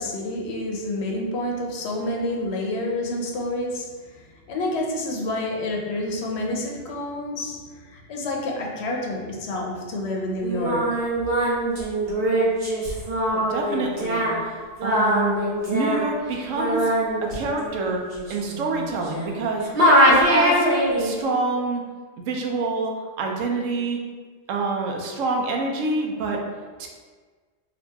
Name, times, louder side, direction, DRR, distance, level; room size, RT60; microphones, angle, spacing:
voice 1, 0.0-11.0, left 1 dB, 65° left, 0 dB, 0.8 m, -29 dB
Singing, 10.4-19.4 19.7-21.1, equal, 55° right, 1.0 m, -22 dB
voice 2, 13.2-14.5 14.8-15.3 15.7-16.9 17.2-18.0 18.3-19.7 20.1-20.7 21.0-21.8 22.2-24.0 24.5-26.4 26.8-26.9, right 3 dB, 90° right, 1 dB, 1.0 m, -27 dB
2.9 x 2.6 x 3.4 m, 1.5 s
omnidirectional pair, 1.3 m